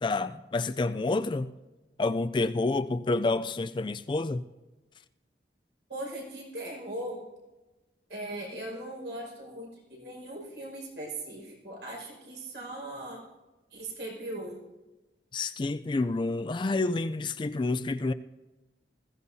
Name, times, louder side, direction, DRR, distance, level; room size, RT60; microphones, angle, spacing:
voice 1, 0.0-1.5 2.0-4.4 15.3-18.1, left 3 dB, 25° left, 0.3 m, -29 dB
voice 2, 5.9-7.2 8.1-13.2 13.7-14.6, right 1 dB, 80° right, 5.4 m, -39 dB
20.5 x 15.5 x 2.7 m
head